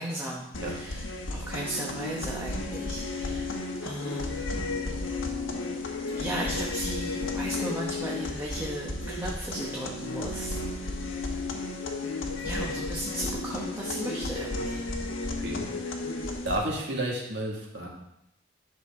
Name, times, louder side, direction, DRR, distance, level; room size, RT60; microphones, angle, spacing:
voice 1, 0.0-4.6 6.2-10.6 11.0-11.5 12.4-14.8, right 1 dB, 10° right, -4 dB, 1.0 m, -36 dB
sound 1, 0.5-16.5, left 2 dB, 75° left, 1.2 m, -33 dB
voice 2, 16.4-17.9, right 1 dB, 60° right, -2 dB, 1.9 m, -31 dB
11.0 x 6.1 x 3.6 m, 0.82 s
head